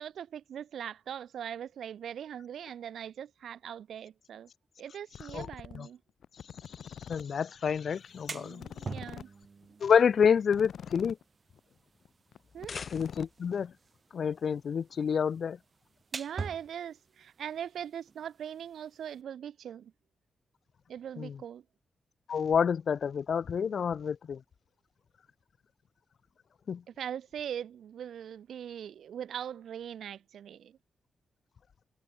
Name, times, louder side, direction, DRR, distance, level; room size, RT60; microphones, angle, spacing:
voice 1, 0.0-4.5 4.8-6.0 8.3-9.3 12.5-12.8 16.1-19.9 20.9-21.6 26.9-30.8, right 9 dB, 90° right, 1.5 m, -41 dB
sound 1, 5.1-5.8 6.2-7.2 7.6-7.7 7.8-7.9 8.2-8.3 8.5-11.2 11.5-11.7 12.0-12.1 12.3-13.7, left 8 dB, 75° left, 1.5 m, -45 dB
voice 2, 7.1-8.6 9.8-11.2 12.9-13.7 14.1-15.6 21.2-21.4 22.3-24.4 26.7-26.8, left 7 dB, 60° left, 0.3 m, -28 dB
sound 2, 7.9-19.2, right 4 dB, 40° right, 0.6 m, -47 dB
sound 3, 12.4-13.5, left 5 dB, 40° left, 2.3 m, -44 dB
wide cardioid pair, 130°, 0 cm